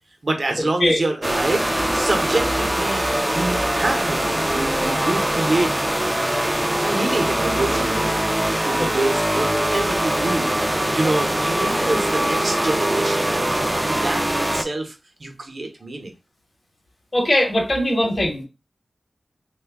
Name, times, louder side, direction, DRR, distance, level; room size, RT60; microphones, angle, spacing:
voice 1, 0.2-5.7 6.8-8.3 8.6-10.5 10.9-16.1, right 2 dB, 55° right, 4 dB, 0.7 m, -26 dB
sound 1, 1.2-14.6, right 1 dB, 15° right, 0.3 m, -22 dB
voice 2, 17.1-18.4, left 1 dB, 45° left, 2 dB, 0.9 m, -20 dB
3.0 x 2.2 x 3.3 m, 0.28 s
wide cardioid pair, 95°, 0 cm